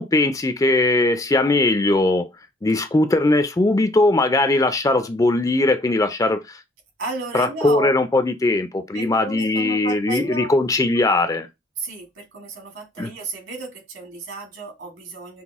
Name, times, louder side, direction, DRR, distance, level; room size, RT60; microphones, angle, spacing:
voice 1, 0.0-2.3 2.6-6.6 7.3-11.5 13.0-13.1, left 2 dB, 15° left, 0.3 m, -19 dB
voice 2, 7.0-7.9 8.9-10.5 11.8-15.4, right 3 dB, 75° right, 2.2 m, -33 dB
5.9 x 2.0 x 3.5 m
head